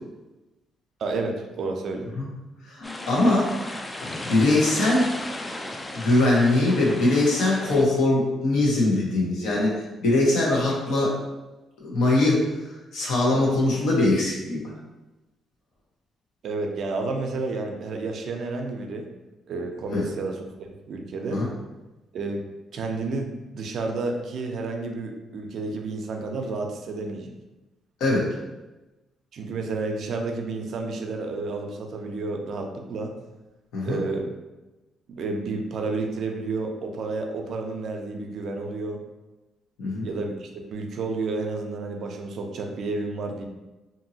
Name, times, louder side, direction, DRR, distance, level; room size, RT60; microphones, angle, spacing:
voice 1, 1.0-2.1 16.4-19.1 19.5-20.4 20.9-21.4 22.1-22.4 22.7-27.3 29.3-33.1 33.8-34.3 35.1-39.0 40.0-43.4, right 3 dB, 65° right, 3 dB, 0.4 m, -30 dB
voice 2, 2.6-3.5 4.0-5.1 5.9-9.7 10.0-11.1 11.8-14.6 19.9-20.0 21.3-21.5 28.0-28.3 33.7-34.0 39.8-40.1, left 2 dB, 85° left, -4 dB, 0.9 m, -22 dB
sound 1, 2.8-7.8, left 1 dB, 20° left, 0.3 m, -35 dB
2.8 x 2.6 x 2.7 m, 1.1 s
cardioid pair, 90°, 0 cm